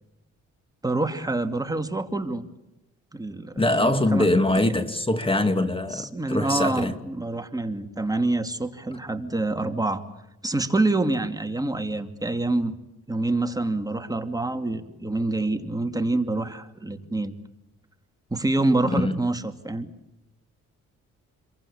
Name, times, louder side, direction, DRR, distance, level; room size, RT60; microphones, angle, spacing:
voice 1, 0.8-2.4 3.1-3.5 3.8-4.3 4.6-4.8 5.9-10.0 10.4-12.8 13.1-17.3 18.3-19.9, right 2 dB, 10° right, 2.5 m, -26 dB
voice 2, 3.6-6.9 18.9-19.3, left 1 dB, 20° left, 2.4 m, -23 dB
29.5 x 23.5 x 8.7 m
cardioid pair, 90°, 30 cm